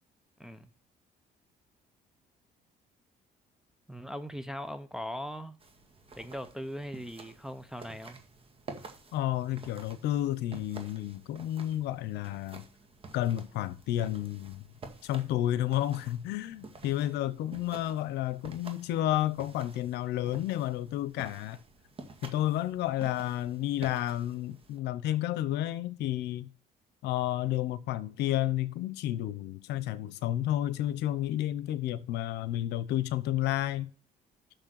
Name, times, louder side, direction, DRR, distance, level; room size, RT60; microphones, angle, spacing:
voice 1, 0.4-0.7 3.9-5.6 6.1-8.2, equal, 5° right, 0.8 m, -40 dB
sound 1, 5.6-24.8, right 3 dB, 35° right, 1.9 m, -50 dB
voice 2, 9.1-12.6 13.1-14.6 15.0-21.6 22.2-26.5 27.0-33.9, left 13 dB, 85° left, 0.9 m, -31 dB
6.6 x 6.4 x 6.5 m
cardioid pair, 110°, 17 cm